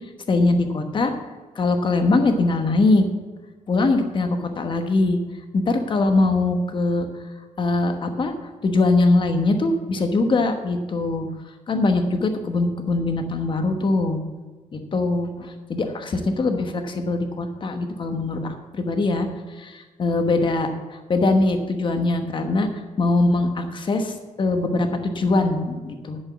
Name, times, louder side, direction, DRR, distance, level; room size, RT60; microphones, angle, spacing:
voice 1, 0.3-1.1 1.5-3.1 3.7-5.2 5.5-7.1 7.6-8.3 8.6-11.3 11.7-14.2 14.7-18.4 18.7-19.3 19.6-22.7 23.0-26.2, left 2 dB, 40° left, 6 dB, 1.1 m, -22 dB
11.0 x 5.5 x 8.0 m, 1.3 s
wide cardioid pair, 160°, 13 cm